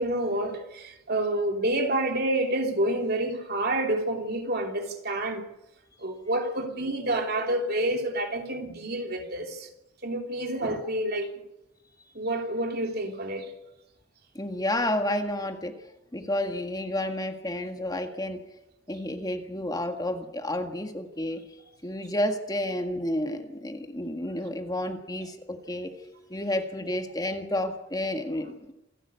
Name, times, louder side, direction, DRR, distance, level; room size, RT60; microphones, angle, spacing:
voice 1, 0.0-5.4 6.0-9.7 10.0-11.3 12.1-13.5, right 1 dB, 55° right, 3.2 m, -28 dB
voice 2, 14.3-15.7 16.1-18.4 18.9-21.4 21.8-28.7, left 1 dB, 20° left, 1.8 m, -31 dB
27.5 x 11.5 x 8.2 m
head